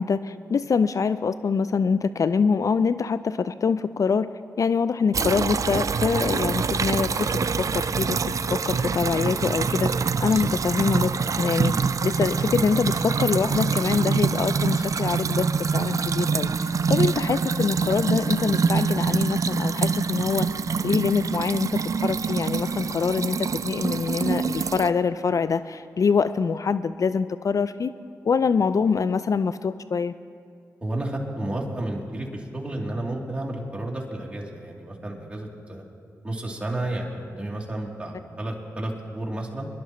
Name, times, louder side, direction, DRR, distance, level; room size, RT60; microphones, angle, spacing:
voice 1, 0.0-4.3 4.6-9.9 10.2-11.7 12.0-16.5 16.9-20.5 20.8-27.9 28.2-30.1, left 5 dB, 50° left, 14 dB, 0.3 m, -24 dB
sound 1, 5.1-24.9, right 5 dB, 50° right, 0.4 m, -25 dB
voice 2, 30.8-35.8 36.2-39.7, right 1 dB, 15° right, -3 dB, 3.0 m, -31 dB
23.0 x 11.5 x 3.1 m, 2.3 s
supercardioid pair, 45°, 7 cm